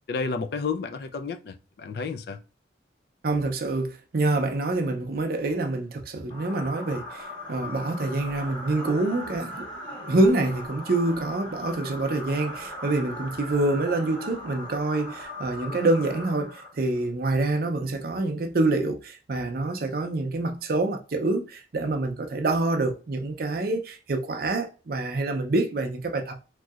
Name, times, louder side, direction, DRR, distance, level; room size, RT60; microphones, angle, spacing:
voice 1, 0.1-2.4, left 4 dB, 60° left, 0.3 m, -31 dB
voice 2, 3.2-9.7 10.1-26.4, right 2 dB, 55° right, 0.5 m, -26 dB
sound 1, 6.3-17.0, left 1 dB, 25° left, 1.2 m, -39 dB
3.0 x 2.7 x 2.3 m
head